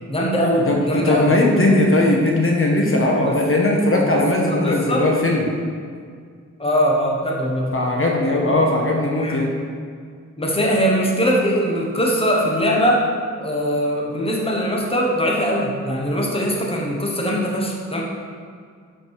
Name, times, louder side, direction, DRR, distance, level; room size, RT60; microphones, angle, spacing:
voice 1, 0.1-1.3 3.2-3.3 4.1-5.1 6.6-7.7 9.2-9.4 10.4-13.1 13.4-18.0, equal, 20° left, -1 dB, 1.2 m, -21 dB
voice 2, 0.7-5.5 7.7-9.5, left 1 dB, 45° left, -1 dB, 1.2 m, -18 dB
12.0 x 5.1 x 4.8 m, 2.1 s
wide cardioid pair, 135°, 30 cm